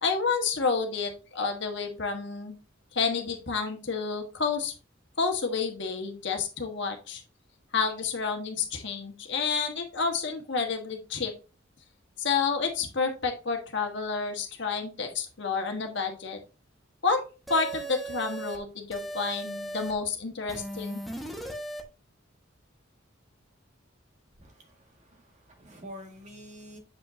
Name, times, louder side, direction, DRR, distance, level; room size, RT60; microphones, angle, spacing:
voice 1, 0.0-2.5 2.9-4.7 5.2-7.2 7.7-11.3 12.2-16.4 17.0-17.2 17.5-21.0, left 5 dB, 60° left, 3 dB, 1.3 m, -29 dB
sound 1, 17.5-18.6 18.9-19.9 20.5-21.8, right 1 dB, ahead, 0.9 m, -37 dB
voice 2, 24.4-26.8, equal, 35° right, 2 dB, 1.7 m, -47 dB
7.6 x 5.1 x 2.6 m, 0.32 s
head